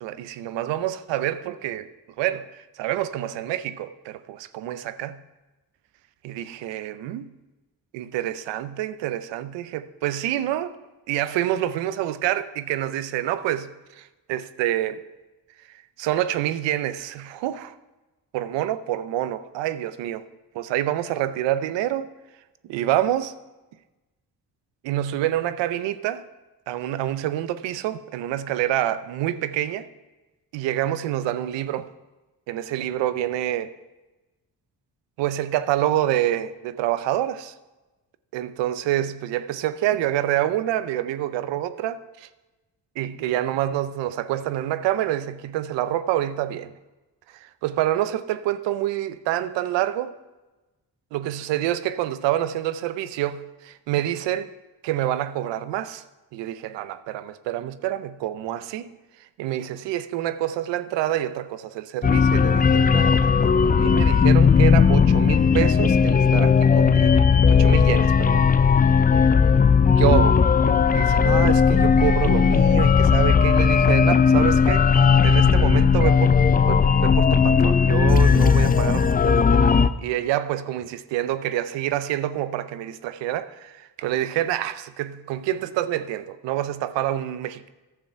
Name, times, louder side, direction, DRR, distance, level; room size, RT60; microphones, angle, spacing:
voice 1, 0.0-5.2 6.2-7.2 7.9-10.8 11.1-15.0 16.0-17.7 18.3-20.2 20.5-22.1 22.7-23.3 24.8-26.2 26.7-29.9 30.5-31.9 32.5-33.7 35.2-37.5 38.3-42.3 43.0-46.7 47.4-50.2 51.1-54.5 54.8-56.0 56.3-58.9 59.4-67.2 67.5-68.4 70.0-70.5 70.9-74.9 75.2-87.7, right 13 dB, 85° right, 0.6 m, -27 dB
sound 1, 62.0-79.9, left 6 dB, 20° left, 0.4 m, -17 dB
11.0 x 7.0 x 5.6 m
supercardioid pair, 55°, 42 cm